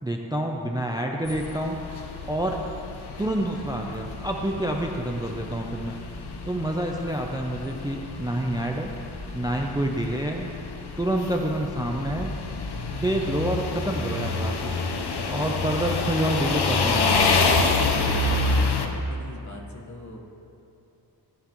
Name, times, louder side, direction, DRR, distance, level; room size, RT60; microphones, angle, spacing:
voice 1, 0.0-2.6 3.2-6.0 6.5-8.9 9.3-10.6 11.0-12.4 12.9-14.8 15.2-17.3, right 1 dB, 10° right, 2 dB, 0.5 m, -28 dB
sound 1, 1.3-18.9, left 3 dB, 65° left, 0.9 m, -28 dB
voice 2, 17.9-20.2, left 2 dB, 40° left, 0 dB, 1.3 m, -44 dB
15.5 x 10.5 x 3.0 m, 2.8 s
wide cardioid pair, 155°, 42 cm